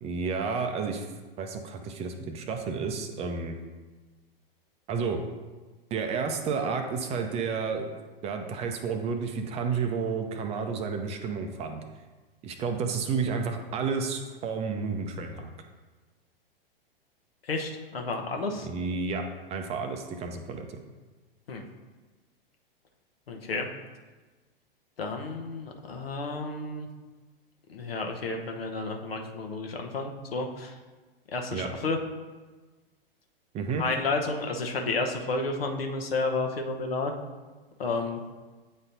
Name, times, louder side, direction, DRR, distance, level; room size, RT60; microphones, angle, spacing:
voice 1, 0.0-1.1 1.4-3.6 4.9-5.2 5.9-7.9 8.2-11.8 12.4-15.5 18.6-20.8 31.5-31.7 33.5-33.8, right 5 dB, 20° right, 5 dB, 0.5 m, -31 dB
voice 2, 17.4-18.7 21.5-21.6 23.3-23.7 25.0-26.9 27.7-30.7 31.3-32.0 33.8-37.1 37.8-38.2, left 3 dB, 80° left, 3 dB, 0.9 m, -31 dB
8.6 x 4.2 x 2.6 m, 1.3 s
hypercardioid pair, 105°, 29 cm